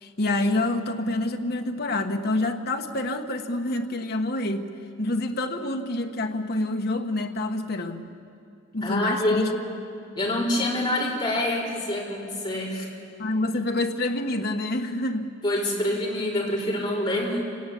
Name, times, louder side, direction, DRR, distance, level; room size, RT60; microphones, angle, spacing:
voice 1, 0.0-4.7 5.0-8.1 8.7-9.5 13.2-15.3, left 2 dB, 50° left, 4 dB, 1.4 m, -27 dB
voice 2, 8.8-9.5 10.2-12.9 15.4-17.4, left 1 dB, 20° left, -5 dB, 4.8 m, -26 dB
26.5 x 18.5 x 8.6 m, 2.5 s
head